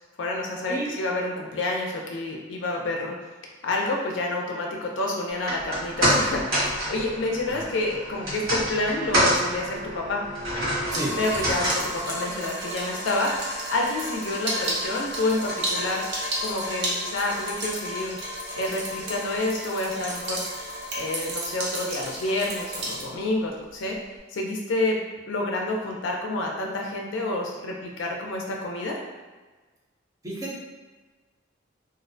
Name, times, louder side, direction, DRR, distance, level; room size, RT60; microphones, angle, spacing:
voice 1, 0.2-3.1 3.6-10.2 11.2-18.2 18.6-20.5 20.9-24.0 24.3-25.0 25.3-29.0, left 2 dB, 75° left, 0 dB, 0.4 m, -28 dB
sound 1, 5.3-17.7 18.0-18.1, equal, 75° right, 1.0 m, -29 dB
sound 2, 10.9-23.0, equal, 60° right, 0.6 m, -32 dB
voice 2, 30.2-30.6, right 1 dB, 20° right, -6 dB, 0.5 m, -31 dB
2.4 x 2.1 x 2.6 m, 1.3 s
head